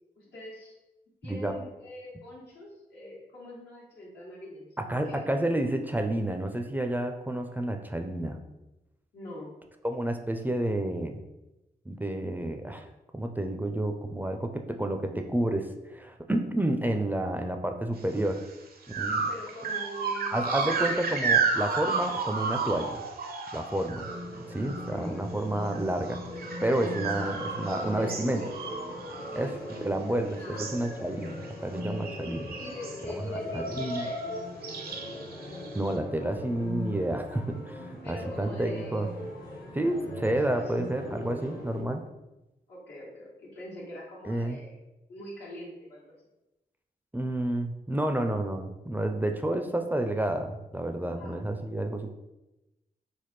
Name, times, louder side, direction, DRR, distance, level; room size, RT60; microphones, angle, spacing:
voice 1, 0.2-0.7 1.2-5.2 9.1-9.6 19.3-21.0 24.7-25.2 27.1-27.7 28.0-28.7 29.2-30.7 32.6-34.4 38.0-39.4 40.4-40.7 42.7-44.8 45.1-46.0 51.2-51.4, left 1 dB, 90° left, -6 dB, 1.2 m, -44 dB
voice 2, 4.8-8.4 9.8-11.2 11.9-12.9 13.1-18.4 19.0-19.3 20.3-23.0 23.5-24.1 24.4-26.2 26.6-28.4 29.3-29.5 29.8-32.5 33.1-34.1 35.7-39.1 39.7-42.0 44.2-44.6 47.1-52.1, right 1 dB, 10° right, 5 dB, 0.4 m, -30 dB
sound 1, 18.2-18.4 18.9-25.0 25.3-30.1 30.4-30.9 31.2-31.5 31.8-33.0 33.7-34.2 34.6-35.9, right 4 dB, 65° right, 0.5 m, -32 dB
sound 2, 23.9-41.8, left 1 dB, 60° left, 1.1 m, -39 dB
3.4 x 2.1 x 3.1 m, 0.97 s
cardioid pair, 55°, 17 cm